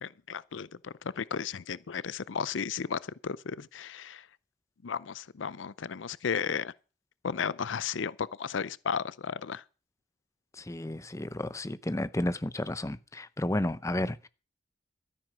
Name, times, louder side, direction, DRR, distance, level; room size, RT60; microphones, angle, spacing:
voice 1, 0.0-4.3 4.8-6.7 7.2-9.6, left 6 dB, 85° left, 0.6 m, -34 dB
voice 2, 10.5-14.3, left 1 dB, 15° left, 0.7 m, -32 dB
13.0 x 10.0 x 6.1 m
head